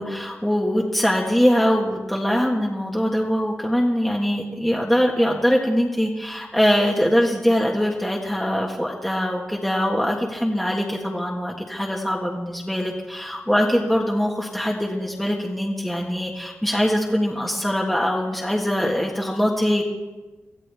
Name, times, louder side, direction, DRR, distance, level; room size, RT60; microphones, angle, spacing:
voice 1, 0.0-19.8, equal, ahead, -2 dB, 1.5 m, -22 dB
23.5 x 15.0 x 3.5 m, 1.2 s
wide cardioid pair, 120°, 5 cm